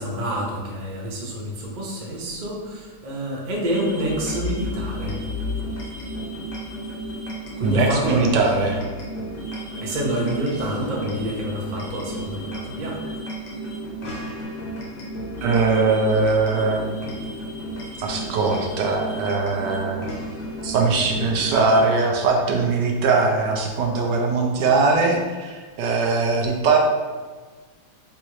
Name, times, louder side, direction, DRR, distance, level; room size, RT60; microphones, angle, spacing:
voice 1, 0.0-5.1 7.6-8.7 9.7-13.1, right 1 dB, 55° right, -3 dB, 0.5 m, -28 dB
sound 1, 3.6-21.8, equal, 65° left, 1.5 m, -33 dB
voice 2, 7.6-8.8 15.4-16.9 18.0-20.0 20.6-26.8, right 3 dB, 75° right, 1 dB, 1.1 m, -21 dB
4.1 x 3.6 x 3.0 m, 1.4 s
omnidirectional pair, 2.1 m